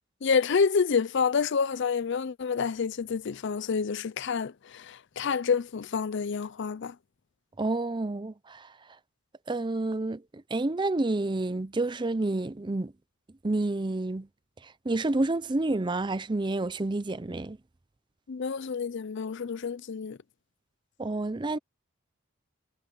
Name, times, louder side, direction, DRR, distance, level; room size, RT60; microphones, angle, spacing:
voice 1, 0.2-7.0 18.3-20.2, left 5 dB, 55° left, 0.5 m, -28 dB
voice 2, 7.6-8.7 9.5-10.2 10.5-12.9 13.4-14.3 14.6-17.6 21.0-21.6, right 2 dB, 20° right, 0.5 m, -29 dB
head